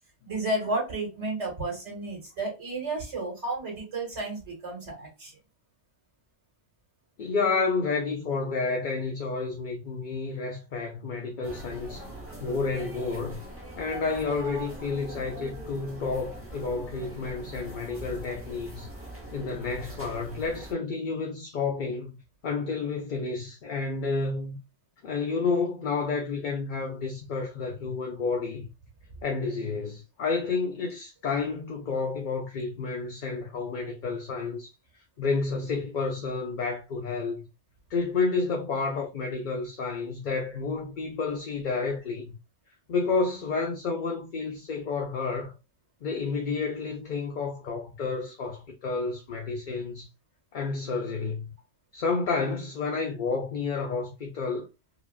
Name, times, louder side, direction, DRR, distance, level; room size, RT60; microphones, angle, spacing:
voice 1, 0.2-5.3, right 2 dB, 80° right, 2.4 m, -32 dB
voice 2, 7.2-12.0 12.4-13.4 13.8-18.9 19.3-22.1 22.4-24.6 25.0-28.6 29.2-34.7 35.2-37.5 37.9-42.3 42.9-45.5 46.0-50.1 50.5-51.5 51.9-54.7, left 4 dB, 50° left, 0.7 m, -30 dB
sound 1, 11.4-20.7, right 1 dB, 10° right, 1.1 m, -42 dB
5.0 x 2.4 x 2.4 m
omnidirectional pair, 1.2 m